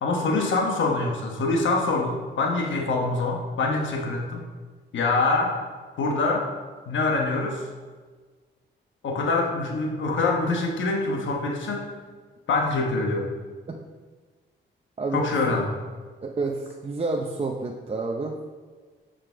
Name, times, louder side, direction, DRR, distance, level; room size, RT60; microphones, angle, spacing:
voice 1, 0.0-4.4 4.9-5.6 6.0-6.5 6.9-7.7 9.0-11.9 12.5-13.3 15.1-15.7, left 3 dB, 75° left, 1 dB, 1.1 m, -25 dB
voice 2, 15.0-15.6 16.2-18.4, right 3 dB, 30° right, 0 dB, 0.7 m, -29 dB
5.8 x 5.1 x 4.5 m, 1.4 s
cardioid pair, 65°, 20 cm